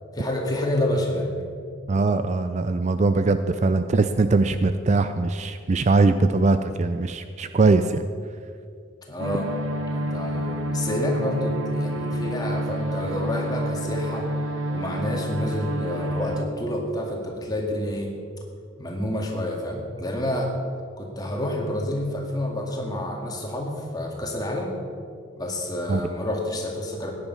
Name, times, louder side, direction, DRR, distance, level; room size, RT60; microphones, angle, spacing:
voice 1, 0.1-1.3 9.1-9.5 9.9-14.3 14.7-18.1 18.8-20.5 21.0-24.8 25.4-27.1, left 1 dB, 20° left, 0 dB, 2.1 m, -28 dB
voice 2, 1.9-8.0 25.9-26.0, right 3 dB, 35° right, 10 dB, 0.4 m, -21 dB
sound 1, 9.2-16.4, equal, 85° right, 1.3 m, -29 dB
15.5 x 10.0 x 5.6 m, 2.3 s
head